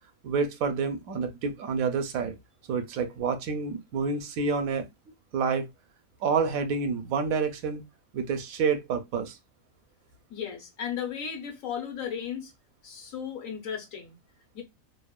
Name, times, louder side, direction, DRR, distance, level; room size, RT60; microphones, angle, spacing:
voice 1, 0.2-2.4 2.7-4.9 5.3-5.7 6.2-7.8 8.1-9.4, right 5 dB, 80° right, 1.0 m, -28 dB
voice 2, 10.3-12.5 12.8-14.2 14.5-14.6, left 8 dB, 75° left, 1.2 m, -35 dB
2.9 x 2.1 x 2.2 m
omnidirectional pair, 1.4 m